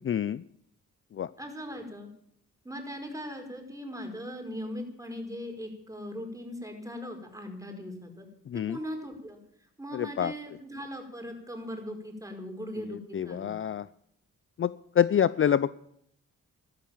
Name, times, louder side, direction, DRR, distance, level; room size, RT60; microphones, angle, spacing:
voice 1, 0.0-0.4 1.2-1.3 8.5-8.8 9.9-10.3 13.1-13.8 14.6-15.7, left 9 dB, 40° left, 17 dB, 0.5 m, -26 dB
voice 2, 1.4-2.1 2.6-8.3 8.5-9.4 9.8-13.6, equal, 10° right, 4 dB, 5.1 m, -39 dB
13.5 x 13.0 x 7.4 m, 0.71 s
cardioid pair, 65°, 31 cm